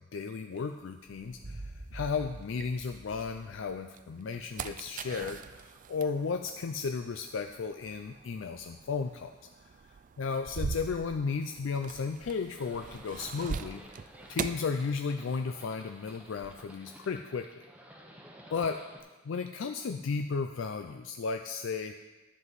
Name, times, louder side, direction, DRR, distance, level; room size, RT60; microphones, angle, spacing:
voice 1, 0.1-9.3 10.2-13.8 14.3-17.6 18.5-18.8 19.2-21.9, left 5 dB, 75° left, 6 dB, 0.4 m, -34 dB
sound 1, 0.6-3.3 3.8-15.5 15.8-16.6, right 6 dB, 40° right, 0.3 m, -42 dB
sound 2, 1.0-3.8, right 2 dB, 75° right, 1.6 m, -46 dB
Livestock farm animals working animals, 12.6-19.0, equal, 5° right, 0.9 m, -53 dB
11.0 x 7.5 x 4.0 m, 1.2 s
head